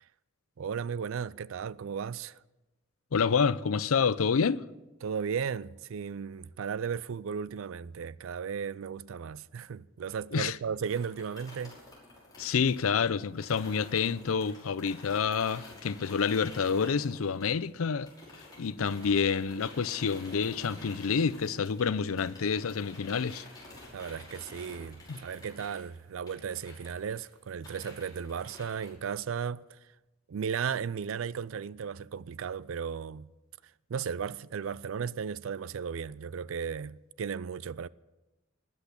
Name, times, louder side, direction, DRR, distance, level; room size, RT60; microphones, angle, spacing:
voice 1, 0.6-2.4 5.0-11.8 23.9-29.8 30.3-33.3 33.9-37.9, right 6 dB, 70° right, 0.4 m, -35 dB
voice 2, 3.1-4.6 10.3-10.6 12.4-18.1 18.6-23.4 25.1-25.2, left 6 dB, 85° left, 0.5 m, -28 dB
sound 1, 10.9-17.8 18.1-28.9, left 2 dB, 20° left, 5.6 m, -50 dB
20.0 x 8.2 x 6.8 m
head